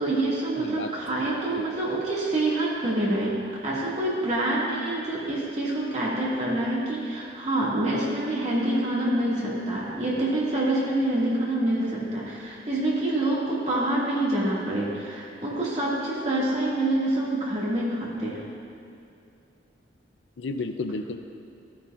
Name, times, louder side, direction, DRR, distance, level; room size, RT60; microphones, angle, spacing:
voice 1, 0.0-3.4 3.6-18.5, right 1 dB, 35° right, -6 dB, 2.1 m, -26 dB
voice 2, 0.6-0.9 1.2-1.3 1.6-1.7 20.4-21.2, left 3 dB, 80° left, 8 dB, 0.5 m, -32 dB
14.5 x 9.6 x 2.5 m, 2.5 s
head